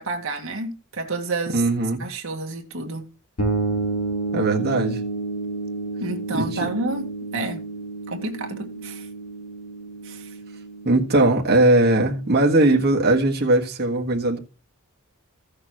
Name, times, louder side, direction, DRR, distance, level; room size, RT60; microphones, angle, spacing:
voice 1, 0.0-1.6 2.0-3.1 6.0-7.6 8.1-9.1 10.0-10.3, right 2 dB, 65° right, 1.9 m, -30 dB
voice 2, 1.5-2.0 4.3-5.0 6.3-6.7 10.9-14.4, right 2 dB, 50° right, 1.7 m, -19 dB
sound 1, 3.4-13.0, right 3 dB, 90° left, 3.8 m, -31 dB
16.0 x 6.6 x 3.1 m
head